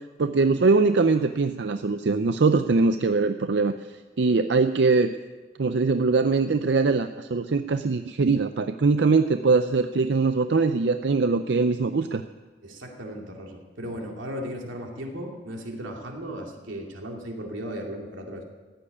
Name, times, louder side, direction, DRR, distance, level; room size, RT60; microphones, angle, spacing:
voice 1, 0.2-3.7 4.2-5.1 5.6-12.2, right 4 dB, 60° right, 9 dB, 0.5 m, -22 dB
voice 2, 12.6-18.4, equal, 85° right, 1 dB, 2.6 m, -36 dB
15.0 x 8.6 x 9.8 m, 1.3 s
head